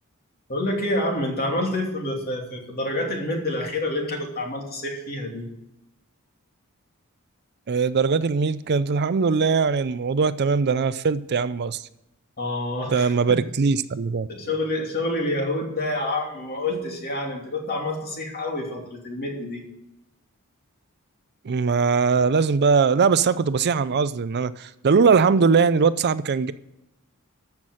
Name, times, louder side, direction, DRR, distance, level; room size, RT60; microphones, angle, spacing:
voice 1, 0.5-5.4 12.4-13.1 14.3-19.6, left 1 dB, 45° left, 2.9 m, -28 dB
voice 2, 7.7-11.8 12.9-14.3 21.4-26.5, right 5 dB, 50° right, 0.5 m, -21 dB
13.5 x 5.9 x 7.8 m
head